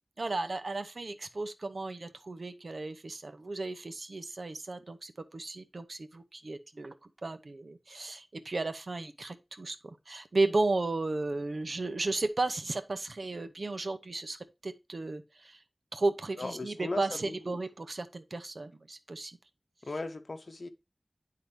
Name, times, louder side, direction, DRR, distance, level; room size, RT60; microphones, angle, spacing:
voice 1, 0.2-7.0 7.2-15.6 15.9-19.4, right 2 dB, 70° right, 0.8 m, -34 dB
voice 2, 16.4-17.6 19.9-20.7, left 3 dB, 75° left, 0.8 m, -38 dB
10.5 x 3.8 x 3.2 m
wide cardioid pair, 45°, 0 cm